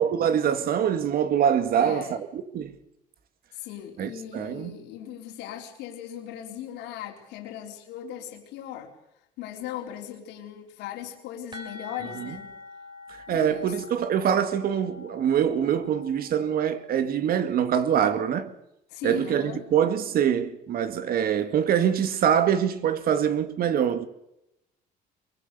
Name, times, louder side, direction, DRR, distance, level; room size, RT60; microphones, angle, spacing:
voice 1, 0.0-2.7 4.0-4.7 12.2-12.3 13.3-18.5 19.0-24.1, right 8 dB, 60° right, 2.1 m, -24 dB
voice 2, 1.8-2.2 3.5-8.9 9.4-12.5 13.3-13.7 18.9-19.6, left 10 dB, 90° left, 3.9 m, -38 dB
sound 1, 11.5-17.1, left 3 dB, 25° right, 4.1 m, -45 dB
24.0 x 23.0 x 6.8 m
cardioid pair, 110°, 17 cm